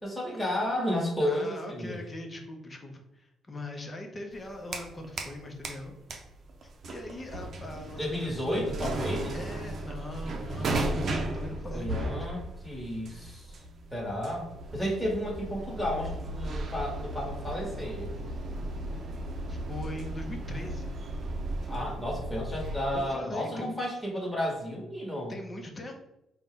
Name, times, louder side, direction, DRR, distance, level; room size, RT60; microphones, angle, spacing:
voice 1, 0.0-2.0 8.0-9.4 11.7-13.5 13.9-14.5 14.7-18.1 21.7-25.3, left 1 dB, 5° left, -4 dB, 1.3 m, -32 dB
voice 2, 1.2-5.9 6.9-8.8 9.3-12.2 19.5-20.9 22.9-23.8 25.3-26.0, left 1 dB, 30° left, 3 dB, 0.8 m, -41 dB
sound 1, 4.3-5.4 5.6-23.1, right 1 dB, 55° right, 0.6 m, -36 dB
3.9 x 2.3 x 3.6 m, 0.88 s
cardioid pair, 90°, 0 cm